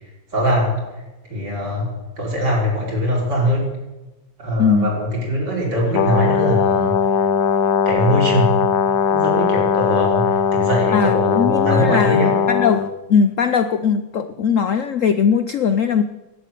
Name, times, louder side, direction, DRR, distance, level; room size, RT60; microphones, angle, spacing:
voice 1, 0.3-0.8 1.3-1.9 2.2-3.7 4.4-7.0 7.9-8.6 9.1-12.4, equal, 55° right, -3 dB, 5.3 m, -21 dB
voice 2, 4.6-4.9 10.9-16.0, left 6 dB, 85° left, 10 dB, 0.7 m, -19 dB
Brass instrument, 5.9-12.9, left 6 dB, 60° left, 1.3 m, -19 dB
11.5 x 11.0 x 9.2 m, 1.1 s
omnidirectional pair, 2.2 m